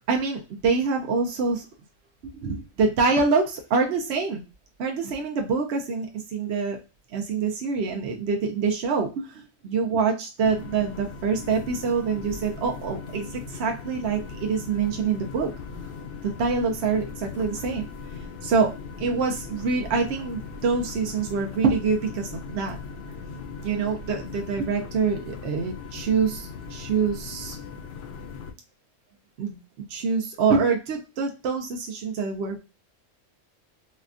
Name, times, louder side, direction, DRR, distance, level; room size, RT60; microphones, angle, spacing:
voice 1, 0.1-1.7 2.2-4.4 4.8-6.8 7.1-15.5 16.2-17.8 18.4-18.7 19.0-22.8 23.6-27.6 29.4-29.6 29.9-32.6, right 5 dB, 65° right, 2 dB, 0.8 m, -25 dB
sound 1, 10.4-28.5, left 5 dB, 60° left, 0.6 m, -39 dB
4.1 x 2.2 x 2.4 m, 0.29 s
omnidirectional pair, 1.3 m